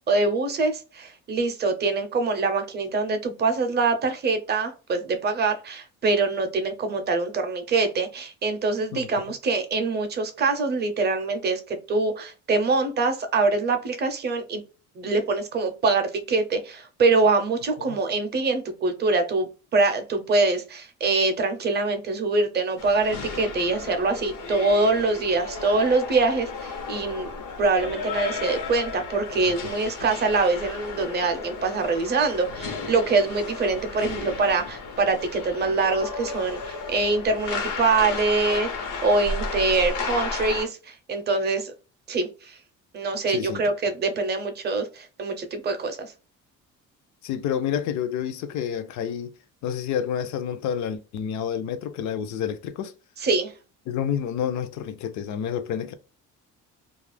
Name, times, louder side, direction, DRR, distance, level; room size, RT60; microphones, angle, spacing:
voice 1, 0.1-14.6 15.0-27.3 27.6-41.7 42.1-42.6 42.9-46.1 53.2-53.5, right 3 dB, 35° right, 0.5 m, -24 dB
sound 1, 22.8-40.7, left 4 dB, 90° left, 0.9 m, -34 dB
voice 2, 29.6-30.1 43.3-43.6 47.2-49.3 49.6-52.9 53.9-55.9, left 8 dB, 65° left, 0.5 m, -29 dB
2.4 x 2.0 x 3.1 m
cardioid pair, 155°, 32 cm